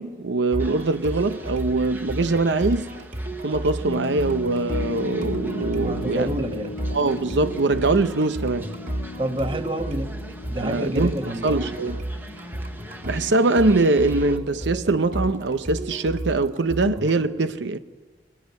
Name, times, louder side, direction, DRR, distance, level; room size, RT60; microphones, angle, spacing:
voice 1, 0.0-2.9 3.4-6.3 6.9-8.7 10.6-12.0 13.0-17.8, right 3 dB, 80° right, 0.8 m, -22 dB
sound 1, 0.5-17.2, right 1 dB, 45° right, 2.3 m, -33 dB
sound 2, 0.6-14.4, right 1 dB, 10° right, 1.1 m, -44 dB
sound 3, 3.9-15.6 16.9-17.0, left 2 dB, 45° left, 0.6 m, -38 dB
voice 2, 5.8-6.8 9.2-10.1 10.5-11.6, right 1 dB, 30° right, 1.2 m, -29 dB
22.0 x 18.0 x 9.4 m
head